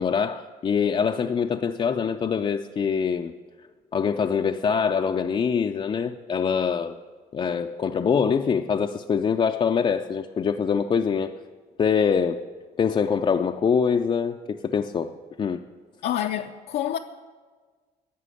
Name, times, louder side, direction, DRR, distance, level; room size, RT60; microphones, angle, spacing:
voice 1, 0.0-3.3 3.9-7.0 7.3-11.3 11.8-12.5 12.8-15.1 15.4-15.6, left 6 dB, 30° left, 0.5 m, -24 dB
voice 2, 16.0-17.0, left 11 dB, 75° left, 0.6 m, -27 dB
11.0 x 7.5 x 9.8 m
cardioid pair, 110°, 17 cm